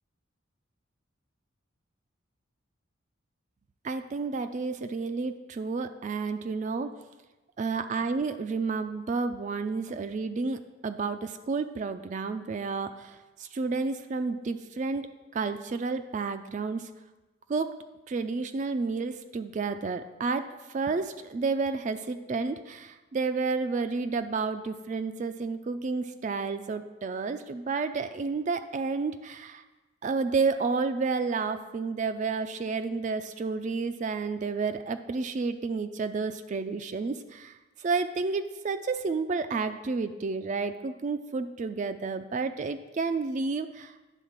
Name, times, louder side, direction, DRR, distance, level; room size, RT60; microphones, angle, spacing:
voice 1, 3.8-6.9 7.6-16.9 17.5-17.7 18.1-29.6 30.0-43.9, right 4 dB, 35° right, 9 dB, 0.3 m, -31 dB
10.0 x 3.8 x 7.2 m, 1.1 s
head